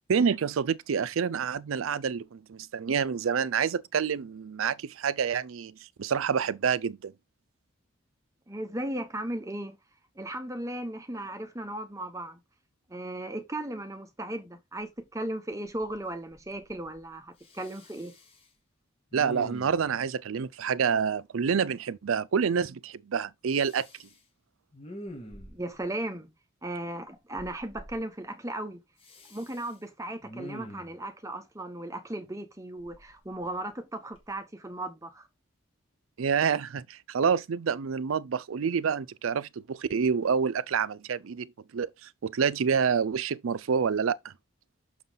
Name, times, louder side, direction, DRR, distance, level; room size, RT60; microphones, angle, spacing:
voice 1, 0.1-7.1 19.1-23.9 36.2-44.3, right 6 dB, 85° right, 0.5 m, -28 dB
voice 2, 8.5-9.8 10.2-12.4 12.9-18.1 25.5-26.3 26.6-28.8 29.3-35.3, right 1 dB, 15° right, 1.0 m, -36 dB
Respiratory sounds, 15.0-15.1 15.5-16.1 16.3-17.1 17.4-18.4 19.1-19.9 23.5-24.2 24.7-25.8 27.4-28.0 29.0-29.7 30.2-31.0 32.8-33.7 34.1-34.3, equal, 30° left, 2.2 m, -46 dB
6.2 x 5.6 x 3.9 m
head